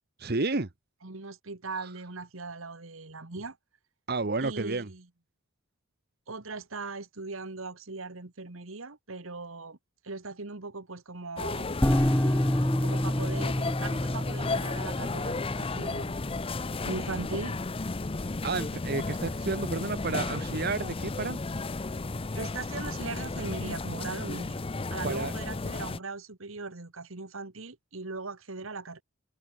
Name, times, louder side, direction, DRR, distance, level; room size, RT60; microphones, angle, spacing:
voice 1, 0.2-0.7 1.8-1.9 4.1-4.9 18.4-21.4 25.0-25.3, right 3 dB, 50° right, 1.1 m, -31 dB
voice 2, 1.0-3.6 4.4-5.1 6.3-9.8 10.0-11.8 12.8-16.1 16.8-17.6 22.3-24.6 24.9-29.0, right 3 dB, 70° right, 1.6 m, -39 dB
sound 1, 11.4-26.0, left 3 dB, 25° left, 0.6 m, -34 dB
sound 2, 11.8-17.1, left 1 dB, 10° left, 0.9 m, -28 dB
head